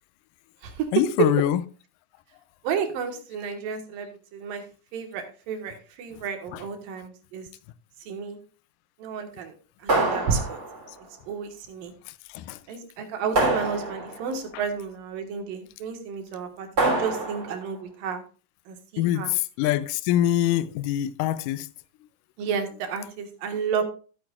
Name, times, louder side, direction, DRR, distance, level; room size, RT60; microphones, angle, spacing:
voice 1, 0.9-1.6 6.5-6.6 10.9-11.0 12.1-12.6 14.5-14.6 19.0-21.7, left 13 dB, 80° left, 2.1 m, -25 dB
voice 2, 2.6-4.6 4.9-7.5 8.1-8.4 9.0-9.5 9.8-10.6 11.3-11.9 12.7-18.2 18.7-19.3 22.4-23.8, right 6 dB, 75° right, 3.2 m, -31 dB
sound 1, 9.9-11.0 13.3-14.3 16.8-17.6, right 2 dB, 30° right, 3.8 m, -26 dB
14.0 x 8.6 x 2.4 m
omnidirectional pair, 4.0 m